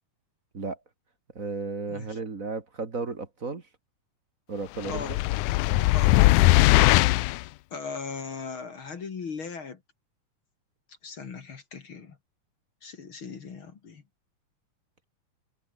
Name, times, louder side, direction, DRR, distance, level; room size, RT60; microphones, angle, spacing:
voice 1, 1.3-3.6 4.5-5.2 5.7-5.9, right 4 dB, 30° right, 1.8 m, -34 dB
sound 1, 4.8-7.4, left 20 dB, 80° left, 1.8 m, -20 dB
voice 2, 5.9-6.4 7.7-9.8 11.0-12.2 12.8-14.0, left 5 dB, 40° left, 2.5 m, -38 dB
omnidirectional pair, 4.0 m